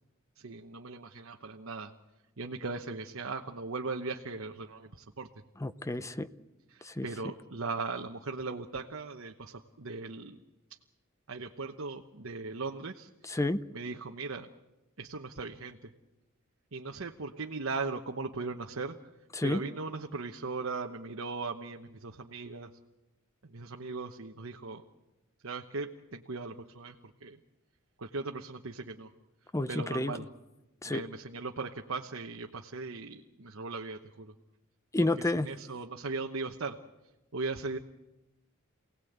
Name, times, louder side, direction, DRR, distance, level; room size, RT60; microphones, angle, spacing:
voice 1, 0.4-1.9 2.4-5.3 6.7-10.4 11.3-13.1 13.7-14.5 15.0-15.9 16.7-18.9 19.4-22.7 23.5-24.8 25.4-26.9 27.2-27.4 28.0-29.1 29.7-30.3 30.8-34.3 35.3-36.8 37.3-37.8, right 3 dB, 70° right, 3 dB, 1.1 m, -38 dB
voice 2, 5.6-6.3 6.8-7.1 13.2-13.6 19.3-19.6 29.5-30.1 30.8-31.0 34.9-35.5, left 2 dB, 15° left, 13 dB, 0.7 m, -30 dB
28.0 x 18.0 x 8.0 m, 1.0 s
head